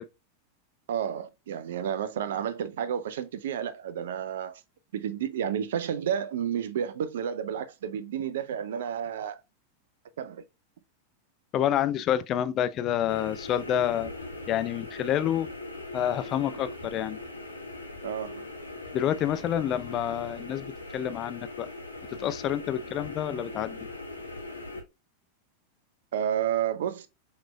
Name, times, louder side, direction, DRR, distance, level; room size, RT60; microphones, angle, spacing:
voice 1, 0.9-4.6 4.9-9.4 10.2-10.4 18.0-18.5 26.1-27.1, right 9 dB, 60° right, 0.5 m, -31 dB
voice 2, 11.5-14.1 14.5-15.5 15.9-17.2 18.9-20.7 20.9-21.7 22.2-23.8, left 10 dB, 35° left, 0.5 m, -28 dB
sound 1, 13.1-24.8, left 2 dB, 85° left, 1.2 m, -40 dB
5.9 x 3.1 x 2.3 m
figure-of-eight pair, 90°, 0 cm